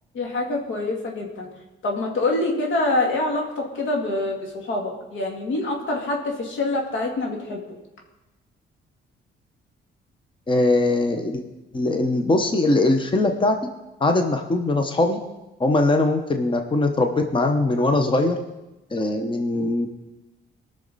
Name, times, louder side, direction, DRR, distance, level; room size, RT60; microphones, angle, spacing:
voice 1, 0.1-1.5 1.8-7.6, left 2 dB, 80° left, 1 dB, 2.2 m, -25 dB
voice 2, 10.5-11.4 11.7-13.6 14.0-15.2 15.6-18.4 18.9-19.9, left 2 dB, 25° left, 5 dB, 1.0 m, -21 dB
19.5 x 6.6 x 4.1 m, 1.0 s
cardioid pair, 90°, 20 cm